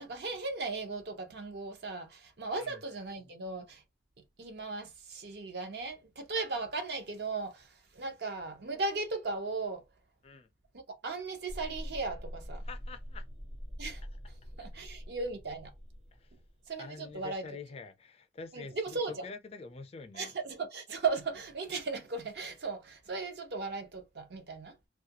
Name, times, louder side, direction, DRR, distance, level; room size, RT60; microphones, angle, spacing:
voice 1, 0.0-3.8 4.4-9.8 10.7-12.6 13.8-14.0 14.6-15.7 16.7-17.4 18.5-19.3 20.1-24.8, right 3 dB, 60° right, 0.6 m, -37 dB
sound 1, 11.5-16.6, equal, 85° right, 1.3 m, -44 dB
voice 2, 12.6-13.3 16.1-16.3 16.8-20.3, left 4 dB, 35° left, 0.3 m, -46 dB
2.3 x 2.2 x 2.7 m
head